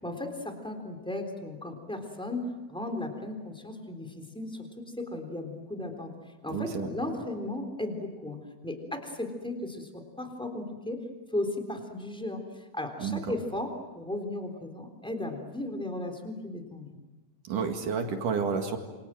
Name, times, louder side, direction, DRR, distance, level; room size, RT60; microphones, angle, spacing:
voice 1, 0.0-6.1 6.4-11.0 11.3-17.0, left 1 dB, ahead, 5 dB, 3.2 m, -36 dB
voice 2, 6.5-6.9 13.0-13.2 17.5-18.8, right 6 dB, 65° right, 5 dB, 3.4 m, -30 dB
28.5 x 25.5 x 7.7 m, 1.2 s
omnidirectional pair, 4.1 m